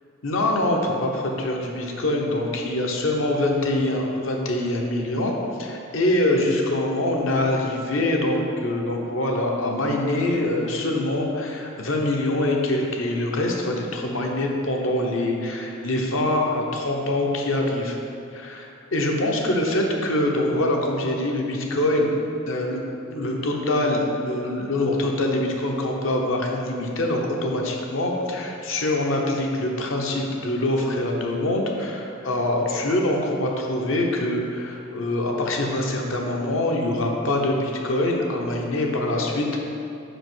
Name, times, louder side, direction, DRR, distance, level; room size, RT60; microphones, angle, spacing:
voice 1, 0.2-18.0 18.3-22.1 22.5-22.8 23.1-39.5, left 1 dB, 65° left, 0 dB, 0.9 m, -24 dB
5.2 x 4.9 x 6.1 m, 2.7 s
head